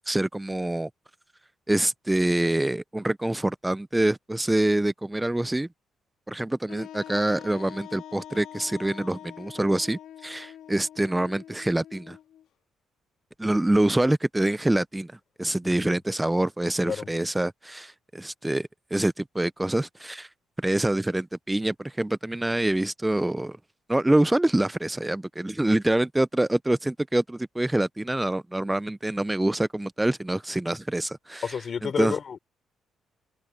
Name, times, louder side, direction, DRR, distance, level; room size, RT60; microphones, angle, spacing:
voice 1, 0.1-0.9 1.7-5.7 6.3-12.2 13.4-15.1 15.4-20.3 20.6-23.6 23.9-31.5 31.8-32.2, right 1 dB, 10° right, 0.4 m, -25 dB
Wind instrument woodwind instrument, 6.7-12.4, left 11 dB, 80° left, 1.8 m, -44 dB
voice 2, 31.4-32.4, left 6 dB, 50° left, 3.4 m, -30 dB
cardioid pair, 90°, 0 cm